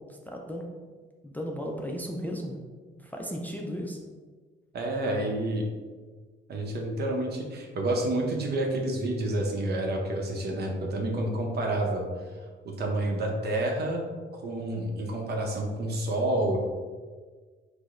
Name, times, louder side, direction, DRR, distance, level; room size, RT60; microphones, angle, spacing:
voice 1, 0.3-0.7 1.2-4.0, equal, 10° left, 0 dB, 0.3 m, -35 dB
voice 2, 4.7-5.6 6.5-12.0 12.6-14.0 14.3-16.6, right 1 dB, 55° right, 1 dB, 0.7 m, -29 dB
4.5 x 2.0 x 2.5 m, 1.5 s
cardioid pair, 90°, 20 cm